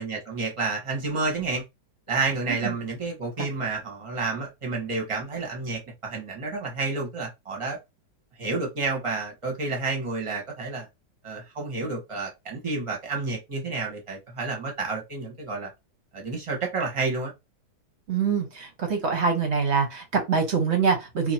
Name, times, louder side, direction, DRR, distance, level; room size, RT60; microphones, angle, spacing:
voice 1, 0.0-1.6 2.1-7.8 8.4-10.9 11.2-15.7 16.1-17.3, right 3 dB, 20° right, 1.0 m, -30 dB
voice 2, 18.1-21.3, right 5 dB, 50° right, 1.0 m, -25 dB
2.9 x 2.5 x 4.2 m
omnidirectional pair, 1.9 m